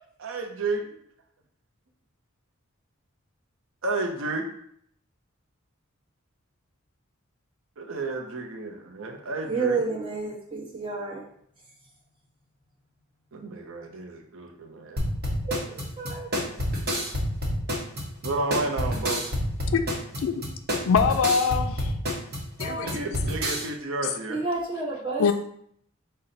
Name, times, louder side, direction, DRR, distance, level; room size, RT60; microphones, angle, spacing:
voice 1, 0.2-1.0 3.8-4.5 7.8-9.8 13.3-15.0 18.2-19.3 22.8-24.4, right 2 dB, 65° right, 2 dB, 0.6 m, -31 dB
voice 2, 9.5-11.2 15.4-16.3 22.6-22.9 24.3-25.3, right 3 dB, 25° right, -4 dB, 1.1 m, -30 dB
sound 1, 15.0-23.7, equal, 50° right, 1.0 m, -28 dB
voice 3, 20.9-21.9 22.6-22.9 24.0-24.1 25.2-25.3, left 6 dB, 70° left, 8 dB, 0.3 m, -23 dB
5.6 x 2.1 x 3.9 m, 0.68 s
head